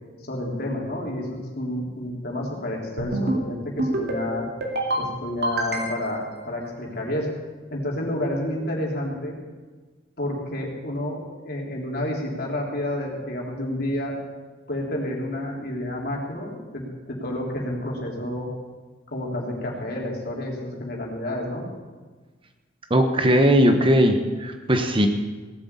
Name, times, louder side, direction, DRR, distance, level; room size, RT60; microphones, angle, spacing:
voice 1, 0.3-4.4 5.0-7.3 7.7-9.4 10.2-14.1 14.7-18.5 19.1-21.6, left 1 dB, 55° left, -2 dB, 3.5 m, -30 dB
sound 1, 3.0-3.4 3.8-4.2 4.6-5.0 5.4-6.2, right 1 dB, 60° right, 2.6 m, -26 dB
voice 2, 22.9-25.1, equal, 30° right, 6 dB, 1.1 m, -19 dB
18.0 x 7.8 x 8.4 m, 1.4 s
head